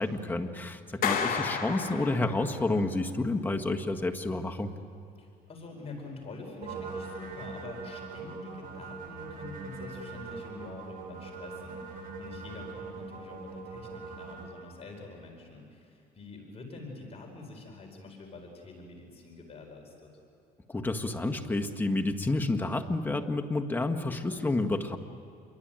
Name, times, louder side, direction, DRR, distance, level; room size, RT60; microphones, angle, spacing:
voice 1, 0.0-4.7 20.7-25.0, left 2 dB, 10° left, 3 dB, 1.7 m, -30 dB
Clapping, 1.0-2.7, left 6 dB, 60° left, 2.9 m, -31 dB
voice 2, 5.2-20.1, left 3 dB, 35° left, 1 dB, 4.8 m, -46 dB
sound 1, 6.6-14.5, right 4 dB, 55° right, 5.6 m, -41 dB
27.5 x 23.0 x 9.1 m, 2.4 s
cardioid pair, 110°, 17 cm